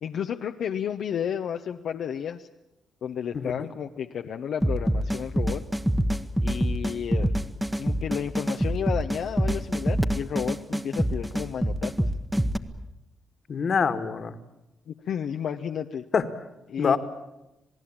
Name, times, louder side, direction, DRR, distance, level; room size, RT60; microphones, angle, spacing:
voice 1, 0.0-2.5 3.0-5.6 6.4-7.3 7.8-12.1 14.9-16.0 16.7-17.0, left 8 dB, 70° left, 5 dB, 0.9 m, -32 dB
sound 1, 4.6-12.6, equal, 5° right, 1.2 m, -25 dB
voice 2, 13.5-14.3 16.1-16.2 16.8-17.0, left 6 dB, 50° left, 10 dB, 1.8 m, -24 dB
27.5 x 18.5 x 8.8 m, 0.95 s
cardioid pair, 110°, 0 cm